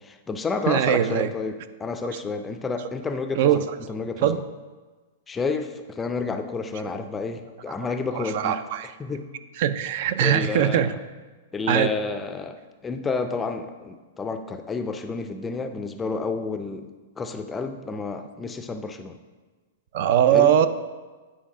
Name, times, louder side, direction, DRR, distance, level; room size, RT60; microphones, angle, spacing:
voice 1, 0.0-4.4 5.3-8.6 9.0-9.3 10.2-10.9 11.5-19.2 20.3-20.5, left 4 dB, 10° left, 7 dB, 0.4 m, -30 dB
voice 2, 0.7-1.3 3.4-3.6 4.2-4.4 7.7-7.8 8.1-8.9 9.6-11.0 11.7-11.9 19.9-20.7, right 10 dB, 55° right, 12 dB, 0.4 m, -21 dB
9.8 x 3.3 x 4.8 m, 1.3 s
hypercardioid pair, 150°, 0 cm